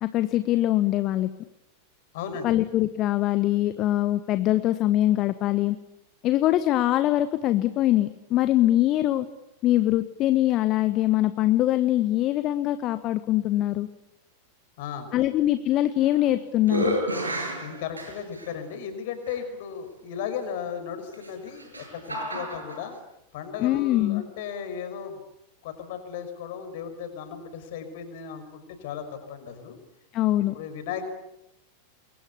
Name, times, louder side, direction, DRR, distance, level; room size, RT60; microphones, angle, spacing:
voice 1, 0.0-1.3 2.4-5.8 6.2-9.3 9.6-13.9 15.1-17.0 23.6-24.2 30.1-30.6, left 14 dB, 35° left, 12 dB, 1.3 m, -23 dB
voice 2, 2.1-2.5 14.8-15.1 17.6-22.9 23.3-25.2 25.6-29.8 30.3-31.0, left 7 dB, 50° left, 8 dB, 5.6 m, -36 dB
sound 1, 15.8-16.3 16.6-18.5 19.3-19.4 21.1-22.8, equal, 80° right, 6.7 m, -31 dB
29.0 x 23.0 x 8.6 m, 0.88 s
figure-of-eight pair, 90°, 0 cm